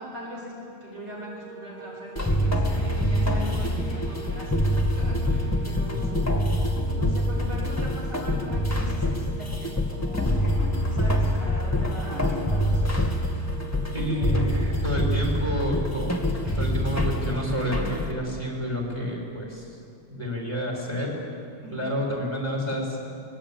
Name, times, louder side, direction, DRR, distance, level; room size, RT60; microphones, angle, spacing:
voice 1, 0.0-6.6 6.9-13.0 16.4-16.9 21.6-22.0, equal, 55° right, -3 dB, 5.7 m, -40 dB
sound 1, 0.9-15.1, right 2 dB, 80° right, 5.6 m, -46 dB
sound 2, 2.2-18.1, equal, 10° left, 2.0 m, -25 dB
voice 2, 13.9-16.1 16.5-19.6 20.1-21.1 21.7-22.9, equal, 15° right, -1 dB, 5.9 m, -29 dB
23.5 x 21.5 x 8.8 m, 2.4 s
omnidirectional pair, 2.2 m